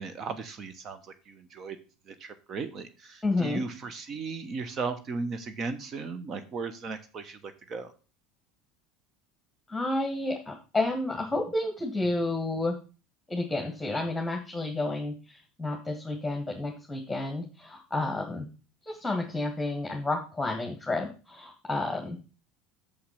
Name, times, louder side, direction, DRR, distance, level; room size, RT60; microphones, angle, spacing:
voice 1, 0.0-1.8 2.1-7.9, right 4 dB, 40° right, 10 dB, 1.1 m, -36 dB
voice 2, 3.2-3.6 9.7-12.7 13.3-18.5 18.9-22.2, left 2 dB, 10° left, 1 dB, 1.7 m, -30 dB
6.7 x 5.8 x 5.8 m, 0.33 s
hypercardioid pair, 75°, 0 cm